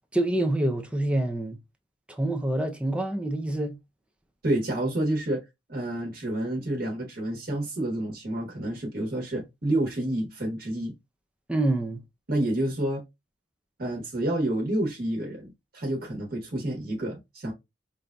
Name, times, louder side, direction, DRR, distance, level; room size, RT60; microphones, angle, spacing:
voice 1, 0.1-1.6 2.1-3.8 11.5-12.0, right 1 dB, 5° right, 0.4 m, -26 dB
voice 2, 4.4-5.4 5.7-10.9 12.3-13.0 13.8-17.5, right 1 dB, 55° right, 1.2 m, -29 dB
5.2 x 2.5 x 2.2 m
head